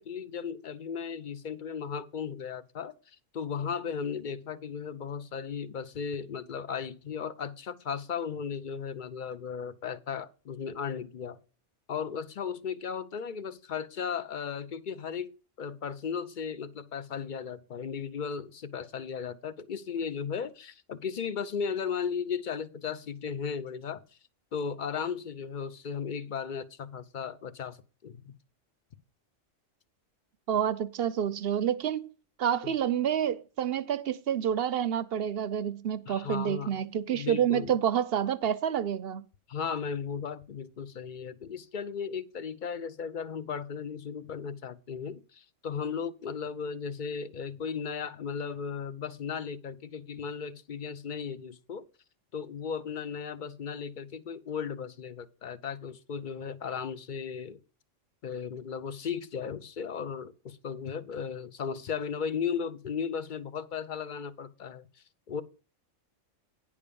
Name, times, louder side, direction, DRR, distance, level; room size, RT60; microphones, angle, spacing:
voice 1, 0.0-11.4 11.9-24.0 24.5-28.3 32.6-32.7 36.1-36.7 37.0-37.8 39.5-51.9 52.3-57.6 58.2-64.9 65.3-65.4, left 6 dB, 45° left, 0.8 m, -36 dB
voice 2, 30.5-32.1 32.4-39.2, right 9 dB, 60° right, 0.8 m, -28 dB
10.0 x 5.1 x 6.8 m
omnidirectional pair, 1.3 m